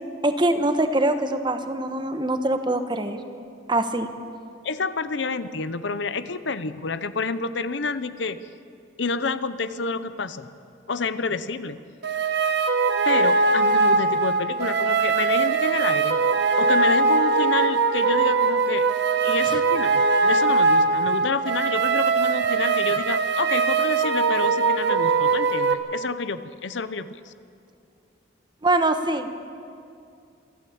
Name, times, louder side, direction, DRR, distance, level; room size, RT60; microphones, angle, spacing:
voice 1, 0.2-3.2 3.7-4.1 19.5-19.6 28.6-29.3, right 2 dB, 25° right, 8 dB, 1.2 m, -23 dB
voice 2, 4.6-8.4 9.0-10.5 10.9-11.8 13.0-16.2 16.6-18.9 19.2-27.3, left 4 dB, 65° left, 13 dB, 0.8 m, -29 dB
sound 1, 12.0-25.7, right 4 dB, 60° right, 1.4 m, -21 dB
27.0 x 12.5 x 8.6 m, 2.5 s
head